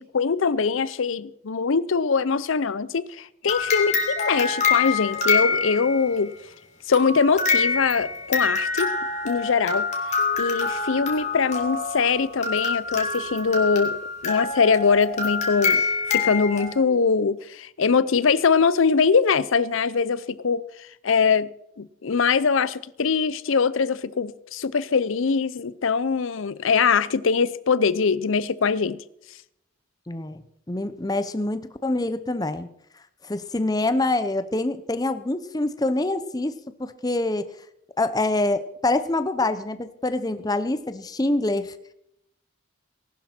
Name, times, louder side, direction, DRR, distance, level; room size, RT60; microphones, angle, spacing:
voice 1, 0.0-6.3 6.9-8.9 9.2-9.9 10.4-14.0 14.2-15.8 16.1-21.5 21.8-29.0, left 5 dB, 70° left, 0.6 m, -22 dB
sound 1, 3.5-6.2 6.9-16.7, left 4 dB, 35° left, 2.5 m, -26 dB
voice 2, 30.1-32.7 33.2-37.5 38.0-41.7, left 2 dB, 20° left, 0.6 m, -25 dB
19.5 x 12.0 x 4.4 m
head